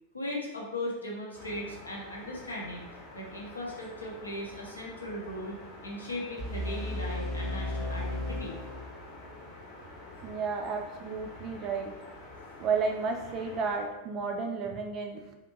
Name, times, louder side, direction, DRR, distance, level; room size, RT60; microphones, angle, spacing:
voice 1, 0.1-5.6 5.8-8.6, left 1 dB, 80° left, -3 dB, 0.7 m, -38 dB
sound 1, 1.3-13.9, left 2 dB, 45° left, 0.8 m, -48 dB
sound 2, 6.4-9.4, left 1 dB, 5° right, 0.7 m, -35 dB
voice 2, 10.2-12.0 12.6-15.3, right 4 dB, 35° right, 3 dB, 0.3 m, -32 dB
2.8 x 2.5 x 2.5 m, 1.0 s
figure-of-eight pair, 90°, 0 cm